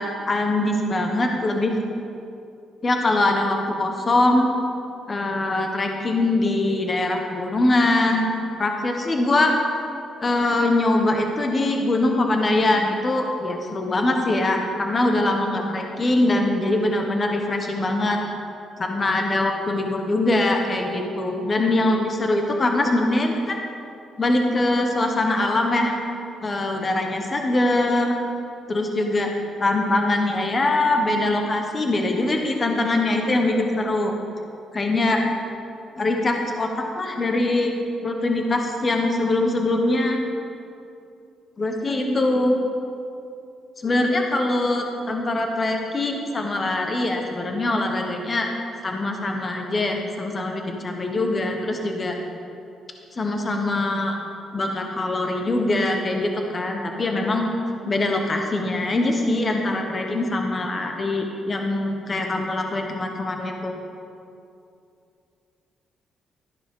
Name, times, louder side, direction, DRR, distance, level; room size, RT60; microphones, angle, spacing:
voice 1, 0.0-1.7 2.8-4.5 5.1-8.3 8.6-9.5 10.2-18.2 18.8-23.6 24.2-25.9 26.4-28.1 28.7-29.3 29.6-34.1 34.7-35.2 36.0-37.7 38.0-40.2 41.6-42.6 43.8-48.5 48.8-52.2 53.1-54.1 54.5-57.5 57.8-63.7, left 2 dB, 35° left, 3 dB, 1.2 m, -22 dB
13.0 x 11.0 x 3.8 m, 2.6 s
cardioid pair, 90°, 0 cm